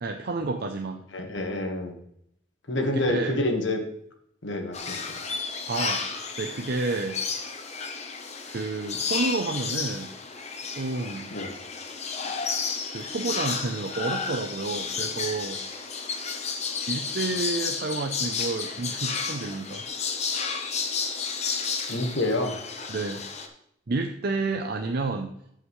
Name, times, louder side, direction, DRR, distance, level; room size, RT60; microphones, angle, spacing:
voice 1, 0.0-1.0 2.9-3.3 5.7-6.0 6.4-7.2 8.5-10.1 10.7-11.3 12.9-15.6 16.9-19.8 22.9-23.2 23.9-25.3, right 3 dB, 55° right, 4 dB, 0.6 m, -30 dB
voice 2, 1.1-2.0 2.7-3.8 4.4-5.2 11.3-11.5 21.9-22.5, left 1 dB, 70° left, 4 dB, 1.4 m, -28 dB
sound 1, 4.7-23.5, left 5 dB, 35° left, 0.9 m, -32 dB
13.5 x 5.8 x 3.2 m, 0.73 s
head